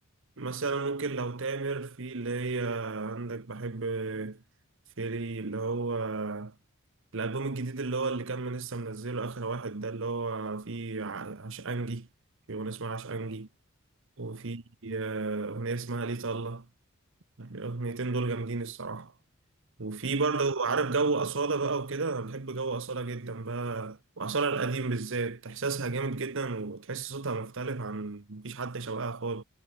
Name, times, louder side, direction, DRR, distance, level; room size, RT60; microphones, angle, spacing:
voice 1, 0.4-4.4 5.0-6.5 7.1-12.1 12.5-13.5 14.2-16.7 17.4-19.1 19.8-29.4, right 3 dB, 65° right, 1.1 m, -32 dB
head